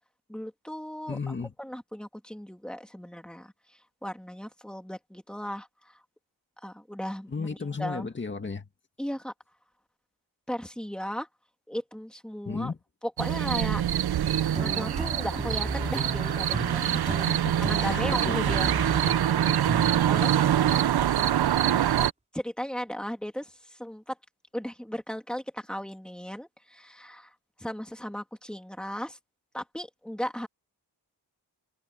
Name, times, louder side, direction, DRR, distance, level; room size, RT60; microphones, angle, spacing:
voice 1, 0.3-3.5 4.0-6.0 6.6-7.5 7.8-8.1 9.0-9.3 10.5-11.3 11.7-12.7 13.0-13.8 14.5-16.9 17.6-18.7 20.1-20.9 22.3-24.2 24.5-27.3 27.6-29.2 29.5-30.5, equal, ahead, 2.8 m, -36 dB
voice 2, 1.1-1.5 7.3-8.7 12.5-12.8 16.9-18.9 19.7-19.9, left 4 dB, 25° left, 2.0 m, -35 dB
sound 1, 13.2-22.1, right 11 dB, 65° right, 0.7 m, -25 dB
sound 2, 14.5-20.9, right 2 dB, 15° right, 3.3 m, -35 dB
wide cardioid pair, 165°, 42 cm